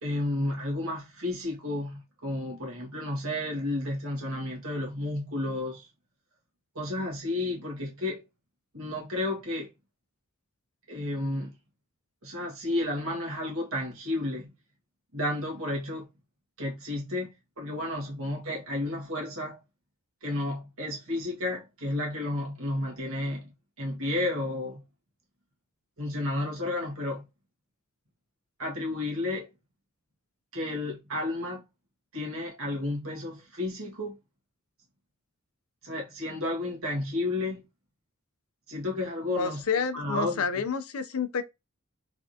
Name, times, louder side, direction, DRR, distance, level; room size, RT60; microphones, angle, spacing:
voice 1, 0.0-5.9 6.8-8.2 8.7-9.7 10.9-11.5 12.2-14.5 15.1-16.1 16.6-17.3 17.6-19.6 20.2-23.5 23.8-24.8 26.0-27.3 28.6-29.5 30.5-31.6 32.1-34.2 35.8-37.6 38.7-39.6 39.9-40.4, left 1 dB, 65° right, 1.7 m, -32 dB
voice 2, 39.4-41.4, left 6 dB, 70° left, 0.5 m, -29 dB
3.4 x 3.3 x 2.7 m
head